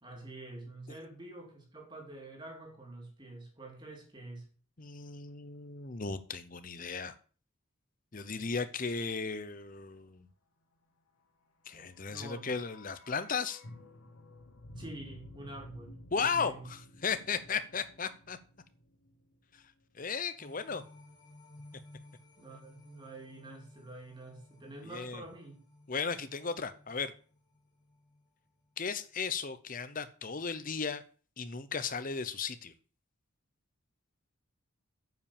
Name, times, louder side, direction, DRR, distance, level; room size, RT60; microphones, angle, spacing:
voice 1, 0.0-4.5 11.8-12.6 14.7-16.7 22.4-25.6, right 2 dB, 20° right, 2.8 m, -47 dB
voice 2, 4.8-7.1 8.1-10.3 11.7-13.6 16.1-18.4 20.0-20.8 24.9-25.2 25.9-27.1 28.8-31.0 31.4-32.7, left 5 dB, 40° left, 0.8 m, -35 dB
sound 1, 11.9-20.1 20.3-20.4, left 1 dB, 85° left, 2.1 m, -53 dB
sound 2, 20.4-28.8 29.2-29.3, left 2 dB, 20° left, 1.9 m, -57 dB
9.3 x 5.7 x 7.1 m
head